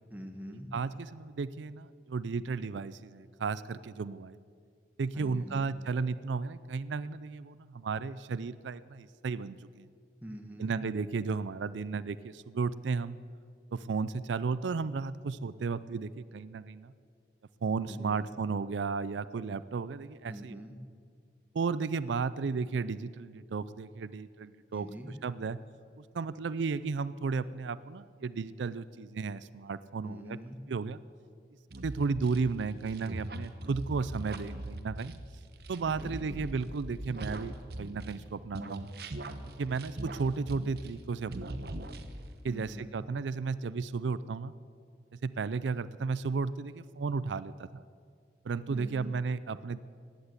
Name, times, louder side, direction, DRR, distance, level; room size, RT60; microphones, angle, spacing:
voice 1, 0.1-0.7 5.1-5.7 10.2-10.8 17.9-18.3 20.3-20.8 24.7-25.1 30.0-30.6 35.9-36.5 42.5-43.0 48.7-49.2, equal, 10° right, 3 dB, 1.3 m, -44 dB
voice 2, 0.7-4.4 5.0-9.9 10.6-13.2 13.7-16.9 17.6-20.6 21.5-24.9 25.2-25.6 26.0-30.4 30.7-31.0 31.8-35.1 35.7-38.9 39.6-41.7 42.4-44.5 45.2-47.8 48.4-49.8, right 4 dB, 90° right, 16 dB, 0.4 m, -34 dB
sound 1, 31.7-38.2 38.5-41.0 41.3-42.4, right 1 dB, 60° right, 1.0 m, -41 dB
16.5 x 10.0 x 8.1 m, 2.2 s
head